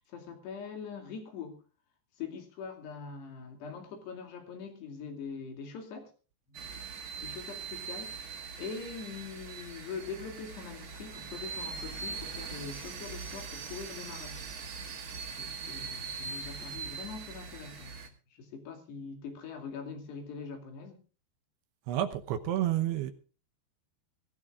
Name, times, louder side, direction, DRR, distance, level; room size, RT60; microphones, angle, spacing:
voice 1, 0.0-1.6 2.2-6.1 6.5-6.6 7.2-14.5 15.4-21.0, left 5 dB, 70° left, 4.7 m, -43 dB
sound 1, 6.5-18.1, right 5 dB, 55° right, 1.4 m, -41 dB
voice 2, 21.9-23.1, right 12 dB, 75° right, 2.9 m, -30 dB
23.0 x 15.0 x 2.5 m
omnidirectional pair, 5.1 m